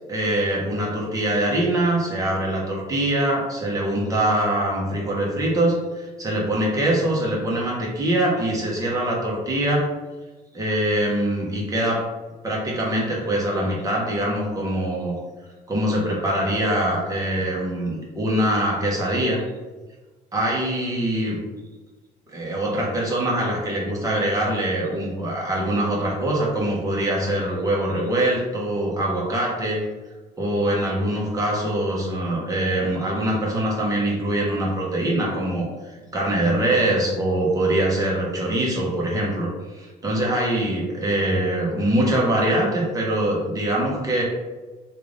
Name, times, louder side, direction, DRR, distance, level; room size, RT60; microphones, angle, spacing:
voice 1, 0.1-9.9 10.5-12.0 12.4-15.1 15.7-19.4 20.3-21.4 22.3-29.8 30.4-35.7 36.1-39.5 39.7-44.2, right 1 dB, 20° right, -4 dB, 1.2 m, -23 dB
3.3 x 2.6 x 3.3 m, 1.3 s
cardioid pair, 110°, 17 cm